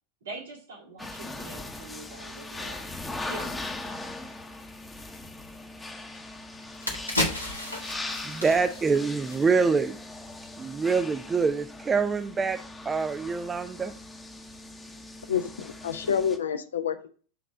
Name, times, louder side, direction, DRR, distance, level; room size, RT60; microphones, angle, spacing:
voice 1, 0.2-2.9 3.2-3.7, right 3 dB, 65° right, 2.2 m, -43 dB
sound 1, 1.0-16.4, left 2 dB, 10° left, 0.9 m, -40 dB
sound 2, 6.2-6.3 6.6-9.9 10.2-10.4, left 1 dB, 85° left, 1.4 m, -33 dB
voice 2, 8.2-10.0 10.6-12.6 12.8-13.9, right 5 dB, 15° right, 0.4 m, -25 dB
voice 3, 15.3-17.1, left 8 dB, 65° left, 0.6 m, -28 dB
7.5 x 3.3 x 5.1 m
figure-of-eight pair, 90°, 0 cm